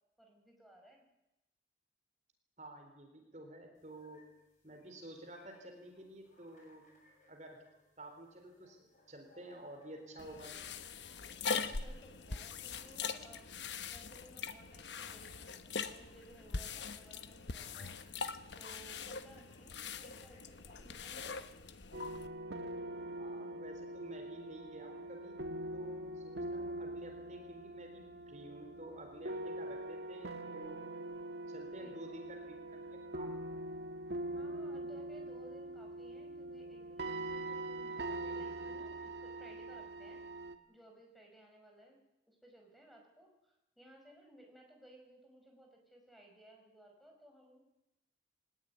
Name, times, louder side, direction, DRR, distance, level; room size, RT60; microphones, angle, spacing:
voice 1, 0.2-1.1 11.5-13.5 13.9-18.2 18.6-21.5 31.8-32.2 34.3-40.2 40.7-42.0 42.3-47.6, right 1 dB, ahead, 1 dB, 5.3 m, -59 dB
voice 2, 2.6-4.2 4.6-6.8 7.3-7.6 8.0-8.8 9.1-10.5 23.2-25.4 25.7-30.8 31.5-33.3, right 1 dB, 40° right, 4 dB, 4.1 m, -51 dB
sound 1, 3.7-20.4, left 1 dB, 45° left, 7.2 m, -69 dB
sound 2, 10.2-22.3, left 5 dB, 80° left, 1.1 m, -42 dB
sound 3, 21.9-40.6, right 2 dB, 75° right, 1.7 m, -43 dB
21.0 x 18.5 x 9.7 m, 0.92 s
head